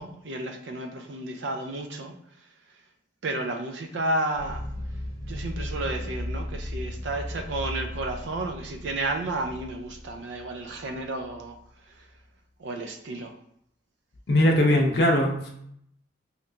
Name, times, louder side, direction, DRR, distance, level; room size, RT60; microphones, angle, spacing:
voice 1, 0.0-2.2 3.2-4.6 5.3-11.6 11.9-12.1 12.6-13.3, right 2 dB, 70° right, 5 dB, 0.4 m, -32 dB
sound 1, 4.3-11.7, left 1 dB, 15° right, 0.6 m, -36 dB
voice 2, 14.3-15.5, left 1 dB, 55° left, 0 dB, 0.5 m, -20 dB
2.9 x 2.5 x 3.3 m, 0.70 s
head